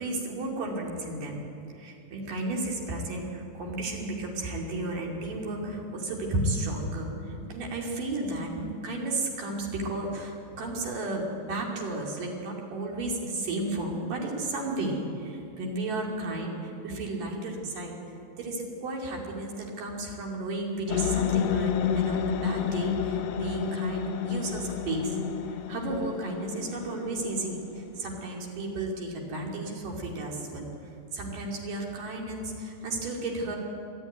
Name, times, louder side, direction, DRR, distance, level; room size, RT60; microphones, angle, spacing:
voice 1, 0.0-1.4 1.7-17.9 18.4-25.2 25.5-30.7 31.1-33.6, right 2 dB, 70° right, -1 dB, 4.1 m, -33 dB
sound 1, 20.9-28.2, left 8 dB, 90° left, 1.4 m, -30 dB
25.0 x 11.0 x 9.5 m, 2.6 s
omnidirectional pair, 3.9 m